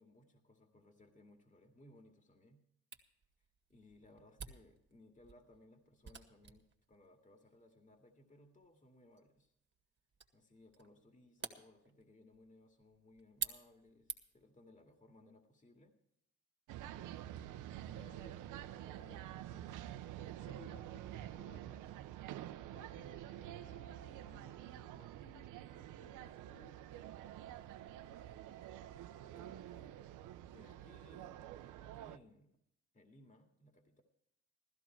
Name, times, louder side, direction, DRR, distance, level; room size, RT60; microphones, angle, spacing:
voice 1, 0.0-2.6 3.7-9.5 10.3-16.0 17.3-17.4 17.8-19.9 29.2-30.0 30.5-32.6 32.9-34.0, left 1 dB, 25° left, 4 dB, 2.2 m, -63 dB
Camera, 2.9-14.5, right 5 dB, 40° right, 1.9 m, -51 dB
sound 1, 16.7-32.2, right 12 dB, 90° right, 0.7 m, -48 dB
voice 2, 20.4-22.0 22.7-23.9 24.3-27.5 27.8-27.9, left 3 dB, 45° left, -1 dB, 2.3 m, -63 dB
15.5 x 13.5 x 4.5 m, 0.77 s
cardioid pair, 90°, 30 cm